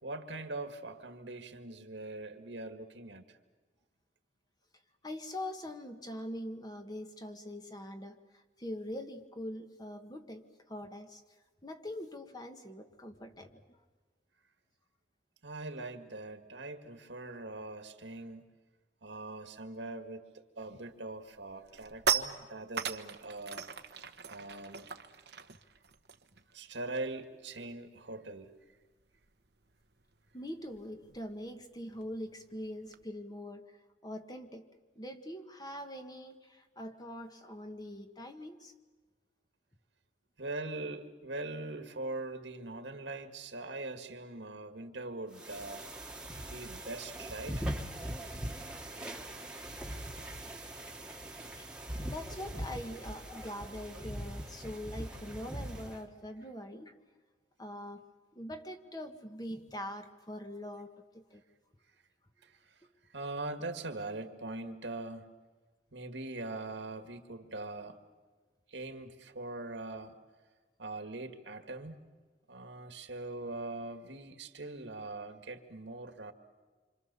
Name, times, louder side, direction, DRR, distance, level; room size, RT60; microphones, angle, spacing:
voice 1, 0.0-3.4 15.4-18.5 19.0-23.7 24.3-24.9 26.5-28.6 40.4-45.9 46.5-47.8 50.2-50.3 62.4-62.8 63.1-65.3 65.9-68.0 68.7-70.2 70.8-72.0 72.5-76.3, right 2 dB, 85° right, 7 dB, 2.0 m, -42 dB
voice 2, 5.0-11.2 11.6-13.8 30.3-33.7 34.0-34.7 34.9-38.7 46.8-47.1 47.6-47.7 48.1-48.3 48.6-48.8 49.0-49.5 51.6-51.7 52.0-56.9 57.6-58.0 58.3-61.4, left 1 dB, 20° left, 6 dB, 1.6 m, -43 dB
sound 1, 20.7-20.9 21.3-27.2 27.5-27.8 28.0-33.0, right 6 dB, 65° right, 1.1 m, -39 dB
sound 2, 45.3-56.0, right 1 dB, 5° right, 1.8 m, -41 dB
27.0 x 26.5 x 6.9 m, 1.3 s
head